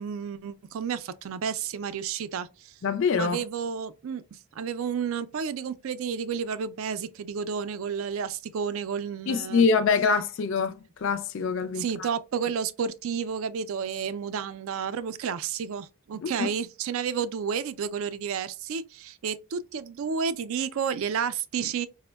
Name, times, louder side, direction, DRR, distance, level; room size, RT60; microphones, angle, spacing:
voice 1, 0.0-2.7 3.2-4.2 4.5-9.6 11.8-21.9, right 6 dB, 65° right, 0.3 m, -31 dB
voice 2, 2.8-3.4 9.3-12.1 16.2-16.5 21.6-21.7, left 5 dB, 55° left, 0.3 m, -25 dB
5.0 x 2.1 x 2.2 m
head